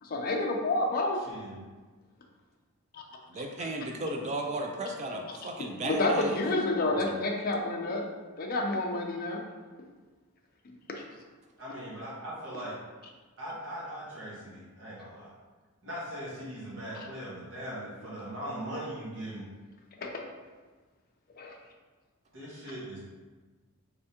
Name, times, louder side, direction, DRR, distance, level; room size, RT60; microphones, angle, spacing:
voice 1, 0.0-1.2 2.9-3.0 5.8-8.1 8.4-9.4 10.9-11.0 20.0-20.2 21.4-21.5, left 2 dB, 45° left, 0 dB, 0.5 m, -29 dB
voice 2, 1.2-1.6 6.8-7.1 11.6-12.8 13.4-15.3 15.8-19.5 22.3-23.0, right 1 dB, 65° right, -7 dB, 1.3 m, -40 dB
voice 3, 3.3-6.4, right 1 dB, 30° right, 2 dB, 0.3 m, -35 dB
3.5 x 3.4 x 2.8 m, 1.3 s
head